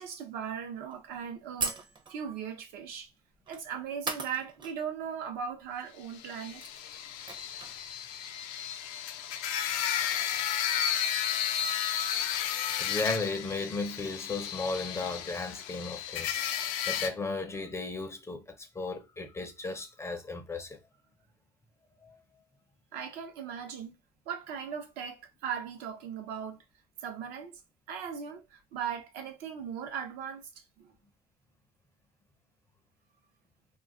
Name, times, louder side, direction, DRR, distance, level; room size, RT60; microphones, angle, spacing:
voice 1, 0.0-1.8 2.1-3.1 3.5-6.6 22.9-23.9 24.3-26.6 27.0-27.6 27.9-30.4 30.8-30.9, right 7 dB, 70° right, 0.8 m, -38 dB
sound 1, 0.9-1.0 1.6-2.3 3.5-3.6 4.1-4.8 5.0-5.1 6.1-6.2 6.4-7.8, right 4 dB, 30° right, 0.7 m, -37 dB
sound 2, 6.2-17.1, left 9 dB, 80° left, 0.4 m, -33 dB
voice 2, 12.8-16.4 16.9-20.8 22.0-22.1, left 3 dB, 15° left, 0.5 m, -35 dB
2.3 x 2.3 x 3.5 m
supercardioid pair, 115°, 16 cm